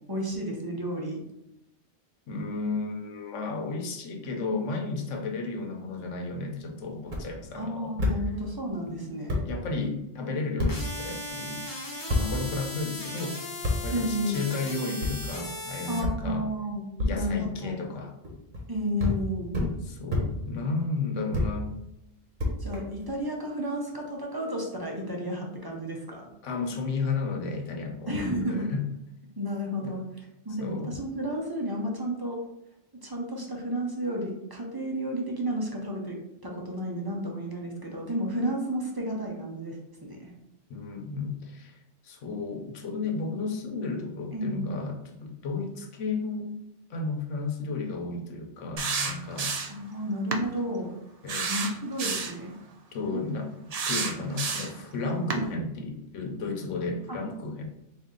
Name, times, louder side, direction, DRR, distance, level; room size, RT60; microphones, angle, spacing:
voice 1, 0.1-1.2 7.6-9.4 13.9-14.4 15.9-16.9 17.1-17.8 18.7-19.6 22.6-26.3 28.1-28.7 29.4-30.0 30.4-32.4 33.0-40.3 44.3-44.7 49.7-50.9 51.5-52.5 53.1-53.2 55.4-55.6 57.1-57.2, equal, 25° right, -1 dB, 0.5 m, -32 dB
voice 2, 2.3-7.9 8.9-9.1 9.4-11.7 12.1-13.4 13.8-16.4 17.0-18.1 19.8-21.7 26.4-28.3 28.7-28.8 29.8-30.0 30.6-31.0 40.7-41.8 42.0-46.5 46.9-49.5 51.2-51.5 52.9-53.5 53.9-57.7, left 3 dB, 85° left, 2 dB, 1.1 m, -33 dB
sound 1, 7.0-7.2 8.0-8.2 8.9-9.0 9.3-9.4 10.6-10.7 12.1-12.2 13.6-13.8 15.0-15.1 16.0-16.1 17.0-17.1 18.2-18.6 19.0-19.2 19.5-19.7 20.1-20.2 21.3-21.5 22.4-23.1, left 2 dB, 45° right, 1.0 m, -27 dB
sound 2, 10.7-16.0, left 2 dB, 20° left, 0.8 m, -37 dB
sound 3, 48.8-49.8 50.3-50.5 51.3-52.4 53.7-54.8 55.3-55.4, right 5 dB, 80° right, 0.3 m, -30 dB
4.0 x 2.6 x 3.7 m, 0.85 s
omnidirectional pair, 1.2 m